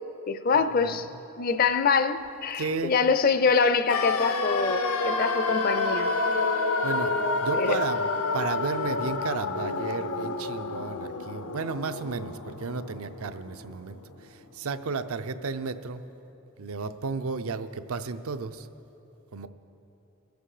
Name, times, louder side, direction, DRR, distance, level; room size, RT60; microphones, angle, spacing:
voice 1, 0.3-1.1 1.4-6.1 7.6-7.8, left 5 dB, 40° left, 11 dB, 0.4 m, -24 dB
voice 2, 2.5-3.0 6.8-8.1 8.3-14.0 14.5-16.0 16.6-18.7 19.3-19.5, right 4 dB, 75° right, 10 dB, 0.5 m, -33 dB
sound 1, 3.9-13.8 14.1-14.2, left 3 dB, 80° left, 0.8 m, -29 dB
22.5 x 8.1 x 4.9 m, 3.0 s
head